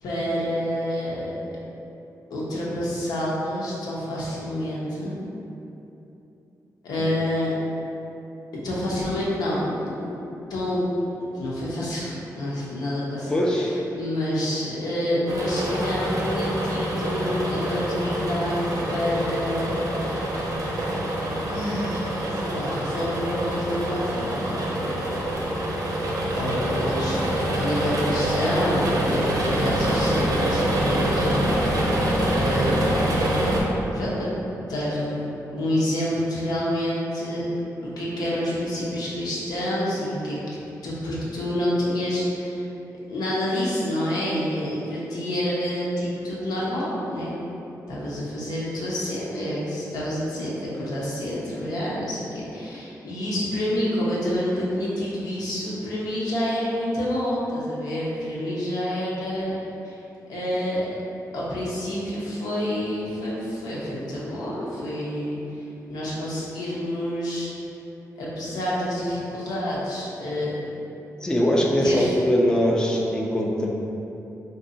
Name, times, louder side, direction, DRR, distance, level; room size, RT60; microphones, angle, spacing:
voice 1, 0.0-1.5 2.3-5.2 6.8-7.5 8.6-10.1 10.5-10.8 11.3-19.8 21.5-25.0 26.4-31.7 32.3-32.7 33.9-34.3 34.6-35.2 35.5-37.4 38.0-42.6 43.1-47.3 47.9-59.5 59.8-60.0 60.3-60.9 61.3-65.4 65.9-67.5 68.2-70.6 71.8-72.1, left 1 dB, 90° left, -7 dB, 0.8 m, -28 dB
voice 2, 13.3-13.7 71.2-73.7, equal, 10° left, -2 dB, 0.3 m, -21 dB
sound 1, 15.3-33.6, right 1 dB, 70° right, 0.6 m, -25 dB
2.6 x 2.3 x 3.8 m, 2.9 s
cardioid pair, 95°, 7 cm